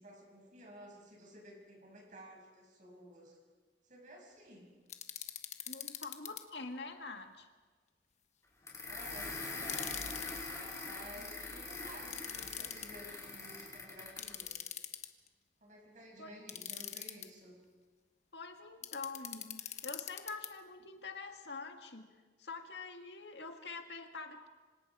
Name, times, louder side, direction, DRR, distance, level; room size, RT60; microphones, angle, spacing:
voice 1, 0.0-3.4 3.8-4.7 8.8-9.4 10.8-14.6 15.6-17.6, equal, 45° right, 0 dB, 6.8 m, -54 dB
sound 1, 4.9-6.4 9.6-10.4 12.1-12.9 14.2-15.3 16.5-17.3 18.8-20.5, left 10 dB, 40° left, 1.2 m, -43 dB
voice 2, 5.7-7.5 11.1-11.3 16.2-16.3 18.3-24.5, left 3 dB, 75° left, 4 dB, 2.0 m, -46 dB
sound 2, 8.7-14.3, left 3 dB, 20° left, 5.0 m, -43 dB
26.5 x 26.0 x 4.9 m, 1.4 s
head